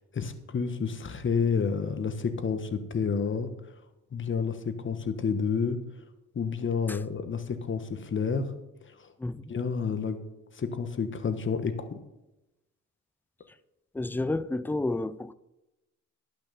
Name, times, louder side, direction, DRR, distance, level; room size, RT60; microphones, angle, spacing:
voice 1, 0.1-3.5 4.1-5.8 6.3-8.5 9.0-9.1 9.5-10.2 10.5-12.0, left 5 dB, 40° left, 1.4 m, -29 dB
voice 2, 13.9-15.3, left 2 dB, 5° left, 0.5 m, -30 dB
11.5 x 6.0 x 7.0 m
cardioid pair, 90°, 30 cm